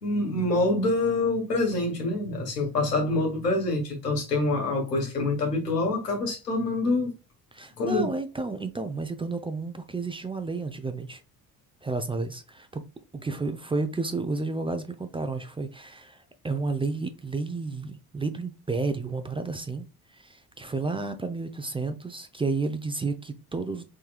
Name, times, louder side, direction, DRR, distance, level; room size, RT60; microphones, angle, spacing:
voice 1, 0.0-7.1 7.8-8.1, left 2 dB, 85° left, 1.3 m, -26 dB
voice 2, 7.5-11.2 11.8-12.8 13.1-23.8, right 3 dB, 10° right, 0.6 m, -31 dB
4.3 x 3.6 x 2.3 m
figure-of-eight pair, 55°, 47 cm